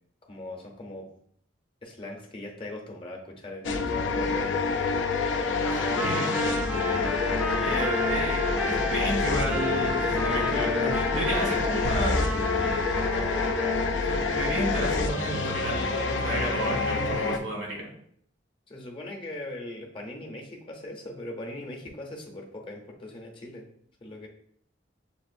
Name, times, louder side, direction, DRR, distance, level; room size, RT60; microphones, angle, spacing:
voice 1, 0.3-1.1 1.8-4.6 18.7-23.7 24.0-24.3, left 1 dB, 30° left, 1 dB, 0.7 m, -40 dB
sound 1, 3.6-17.4, left 4 dB, 70° left, 0.4 m, -27 dB
Trumpet, 5.6-13.8, equal, 5° right, 0.4 m, -33 dB
voice 2, 5.7-6.4 7.6-12.2 14.0-17.9, right 1 dB, 85° right, -1 dB, 1.6 m, -32 dB
sound 2, 11.8-14.5, right 1 dB, 65° right, 0.4 m, -35 dB
6.8 x 2.5 x 2.5 m, 0.66 s
head